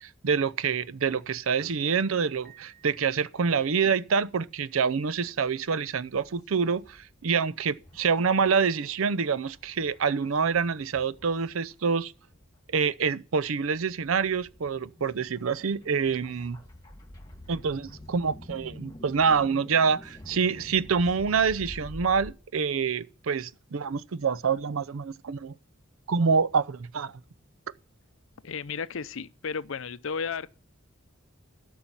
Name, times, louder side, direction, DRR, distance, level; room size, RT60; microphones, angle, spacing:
voice 1, 0.0-12.1 12.7-16.6 17.5-25.5 26.1-27.1, right 5 dB, 80° right, 0.6 m, -26 dB
Piano, 2.4-3.9, right 10 dB, 5° right, 3.0 m, -58 dB
sound 1, 5.1-5.5 5.9-7.1 7.4-7.5 7.7-12.6 13.0-13.1 13.5-22.3, left 1 dB, 20° left, 2.5 m, -48 dB
voice 2, 28.4-30.5, left 5 dB, 70° left, 0.6 m, -33 dB
13.0 x 5.6 x 7.3 m
head